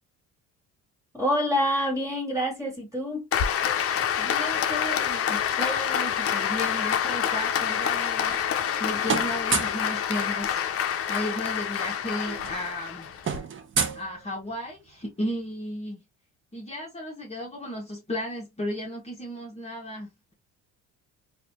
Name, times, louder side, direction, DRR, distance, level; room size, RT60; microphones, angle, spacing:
voice 1, 1.1-3.3, equal, 10° right, 2.1 m, -26 dB
Applause, 3.3-13.4, left 8 dB, 45° left, 0.7 m, -27 dB
voice 2, 4.2-13.5 13.9-16.0 16.5-20.3, left 1 dB, 20° left, 1.4 m, -34 dB
sound 1, 8.0-8.8 9.0-9.9 11.2-11.3 11.6-11.8 12.1-14.7, right 6 dB, 35° right, 0.9 m, -31 dB
4.0 x 2.7 x 2.8 m
cardioid pair, 100°, 33 cm